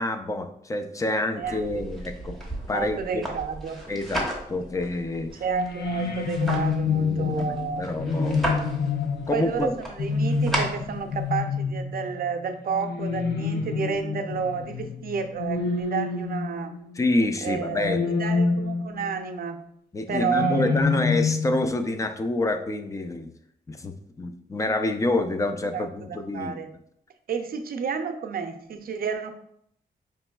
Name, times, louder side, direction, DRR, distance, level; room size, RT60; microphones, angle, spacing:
voice 1, 0.0-2.4 2.7-3.3 3.9-5.3 6.8-8.5 9.3-9.7 17.0-18.1 18.4-18.5 19.9-23.3 23.7-26.5, left 2 dB, 20° left, 7 dB, 0.4 m, -27 dB
voice 2, 1.3-1.9 2.7-3.8 5.3-7.8 9.3-16.8 17.4-19.6 20.1-20.7 25.7-26.7 27.3-29.3, right 6 dB, 60° right, 6 dB, 0.5 m, -31 dB
sound 1, 1.4-11.4, right 1 dB, ahead, 0.8 m, -35 dB
sound 2, 5.5-17.1 17.8-19.1 20.1-21.7, left 4 dB, 70° left, 0.5 m, -27 dB
5.1 x 3.0 x 2.3 m, 0.70 s
wide cardioid pair, 115°, 17 cm